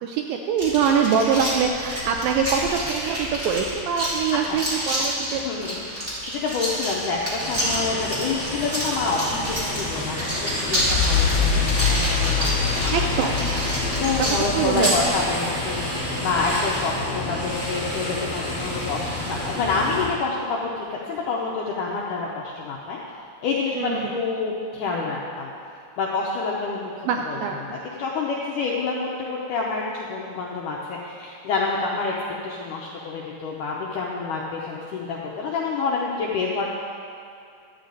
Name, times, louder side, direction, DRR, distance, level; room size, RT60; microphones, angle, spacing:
voice 1, 0.0-5.4 12.9-13.4 14.6-14.9 23.8-24.1 27.1-27.7, right 6 dB, 85° right, 3 dB, 2.1 m, -24 dB
sound 1, 0.6-15.1, equal, 20° right, 1.5 m, -29 dB
voice 2, 5.3-13.1 13.5-23.0 23.4-25.5 26.0-32.1 32.4-36.7, left 4 dB, 90° left, -3 dB, 1.8 m, -28 dB
sound 2, 7.4-20.1, left 1 dB, 5° right, 1.2 m, -30 dB
sound 3, 10.8-17.3 17.5-17.7, left 6 dB, 50° left, 1.6 m, -26 dB
12.5 x 8.3 x 3.9 m, 2.5 s
omnidirectional pair, 4.5 m